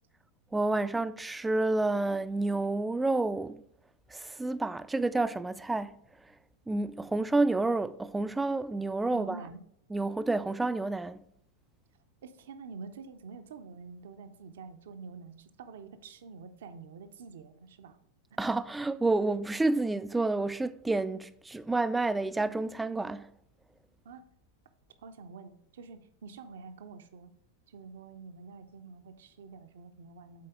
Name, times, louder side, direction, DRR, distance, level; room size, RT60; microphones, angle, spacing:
voice 1, 0.5-3.6 4.1-6.0 6.7-9.4 9.9-11.2 18.4-23.3, right 2 dB, 10° right, 0.3 m, -29 dB
voice 2, 9.1-9.6 12.2-18.0 18.3-18.4 24.0-24.2 25.0-27.3 27.7-30.5, right 4 dB, 60° right, 0.5 m, -47 dB
8.4 x 4.1 x 3.7 m
figure-of-eight pair, 90°, 0 cm